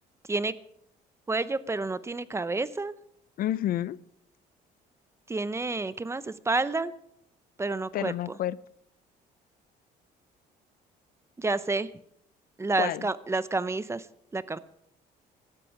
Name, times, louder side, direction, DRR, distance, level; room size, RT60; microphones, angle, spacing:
voice 1, 1.3-2.9 5.3-6.9 7.6-8.4 11.4-11.9 12.6-14.1 14.3-14.6, right 3 dB, 15° right, 15 dB, 0.7 m, -29 dB
voice 2, 3.4-4.0 7.9-8.6 12.8-13.1, left 12 dB, 60° left, 20 dB, 0.5 m, -29 dB
18.0 x 12.5 x 4.8 m, 0.73 s
cardioid pair, 110°, 17 cm